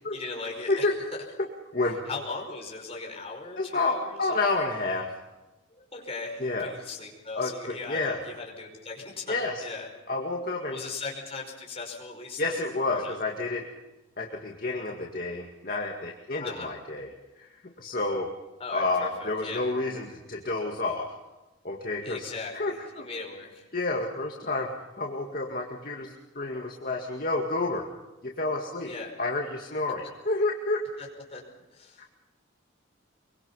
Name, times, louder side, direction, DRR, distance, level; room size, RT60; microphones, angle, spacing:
voice 1, 0.1-0.9 2.1-4.4 5.7-9.9 10.7-12.6 12.9-13.2 16.4-16.7 18.6-19.7 22.0-23.7 28.8-29.1 31.0-31.4 31.7-32.1, left 3 dB, 30° left, 0 dB, 5.2 m, -38 dB
voice 2, 0.7-1.1 1.7-2.0 3.6-5.2 6.4-6.7 7.3-8.2 9.3-9.6 10.1-10.8 12.4-13.6 14.2-17.1 17.4-18.3 18.7-21.2 21.6-23.1 23.7-27.9 28.2-28.9 29.2-31.0, left 2 dB, 45° left, 0 dB, 2.1 m, -30 dB
24.0 x 23.5 x 5.6 m, 1.1 s
head